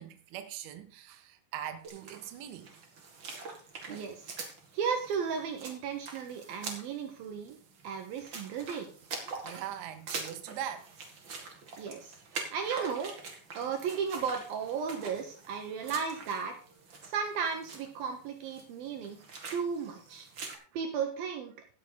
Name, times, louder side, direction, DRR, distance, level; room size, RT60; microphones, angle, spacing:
voice 1, 0.0-2.9 9.4-10.9 11.3-11.5 12.4-12.5 15.8-15.9, right 10 dB, 85° right, 3.4 m, -42 dB
sound 1, 1.8-20.6, right 4 dB, 55° right, 1.3 m, -45 dB
voice 2, 3.9-4.3 4.7-7.6 7.8-8.9 11.8-12.2 12.5-13.2 13.6-16.6 17.0-19.2 19.5-20.3 20.7-21.5, right 6 dB, 70° right, 2.4 m, -34 dB
17.0 x 6.5 x 3.9 m
omnidirectional pair, 5.2 m